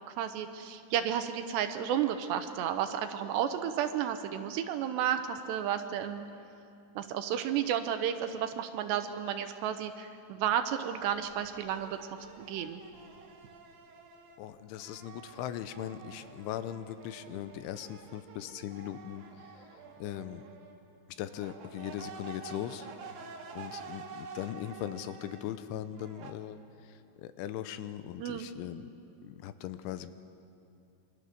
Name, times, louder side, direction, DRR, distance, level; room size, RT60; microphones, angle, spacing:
voice 1, 0.2-6.3 7.0-12.0 12.4-12.8 28.2-28.5, right 9 dB, 75° right, 8 dB, 2.9 m, -32 dB
sound 1, 11.0-14.4 14.8-20.8 21.3-25.5 25.9-26.3, right 5 dB, 60° right, 3.0 m, -49 dB
voice 2, 14.4-19.2 20.0-20.4 21.2-22.9 23.5-28.9 29.2-30.1, left 11 dB, 90° left, 11 dB, 3.3 m, -39 dB
27.5 x 24.5 x 6.7 m, 2.6 s
omnidirectional pair, 5.4 m